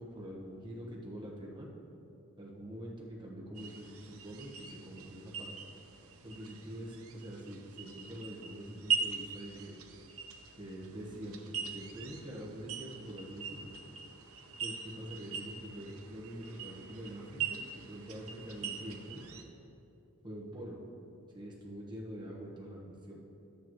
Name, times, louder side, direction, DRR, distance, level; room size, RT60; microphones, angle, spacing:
voice 1, 0.0-1.7 2.4-5.5 6.2-9.7 10.6-13.7 14.6-19.2 20.2-20.8 21.3-23.2, equal, 20° right, -2 dB, 1.2 m, -45 dB
sound 1, 3.5-19.4, right 6 dB, 75° right, 0.7 m, -42 dB
12.0 x 8.5 x 3.1 m, 2.8 s
head